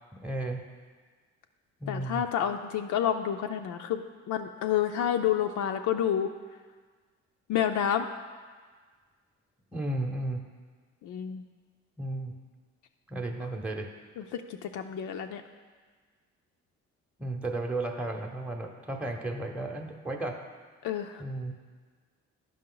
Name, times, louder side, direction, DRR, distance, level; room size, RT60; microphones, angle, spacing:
voice 1, 0.1-0.6 1.8-2.2 9.7-10.4 12.0-12.3 13.1-13.9 17.2-20.4 21.2-21.5, right 2 dB, 5° right, 1 dB, 0.7 m, -34 dB
voice 2, 1.9-4.0 4.3-6.3 7.5-8.1 11.0-11.4 14.2-15.4 20.8-21.2, left 9 dB, 75° left, 5 dB, 0.5 m, -29 dB
11.0 x 5.2 x 3.8 m, 1.5 s
cardioid pair, 90°, 30 cm